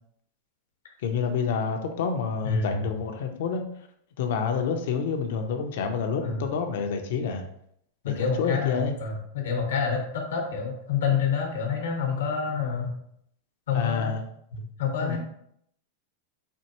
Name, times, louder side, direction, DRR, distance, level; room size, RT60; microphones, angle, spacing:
voice 1, 1.0-3.6 4.2-7.4 8.0-8.9 13.7-14.2 15.0-15.2, left 6 dB, 70° left, 5 dB, 0.6 m, -28 dB
voice 2, 2.4-2.8 6.2-6.4 8.0-12.9 13.7-14.1 14.5-15.2, left 6 dB, 85° left, 2 dB, 1.0 m, -28 dB
4.4 x 2.5 x 2.9 m, 0.71 s
hypercardioid pair, 115°, 0 cm